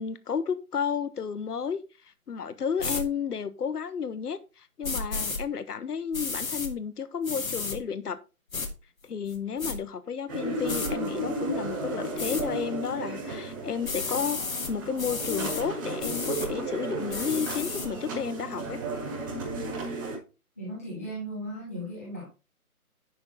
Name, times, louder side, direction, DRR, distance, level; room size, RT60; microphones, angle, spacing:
voice 1, 0.0-1.8 2.3-8.2 9.0-14.4 14.7-18.8, left 7 dB, 85° left, 1.0 m, -32 dB
sound 1, 2.8-3.0 4.8-5.4 6.1-6.7 7.2-7.8 8.5-8.7 9.3-9.7 10.7-10.9 12.2-12.4 13.8-14.7 15.0-15.6 16.0-16.5 17.1-17.9, left 4 dB, 65° left, 2.0 m, -32 dB
sound 2, 10.3-20.2, right 2 dB, 15° right, 2.2 m, -34 dB
voice 2, 20.6-22.2, equal, 10° left, 1.0 m, -36 dB
10.5 x 4.7 x 4.5 m
hypercardioid pair, 175°, 45 cm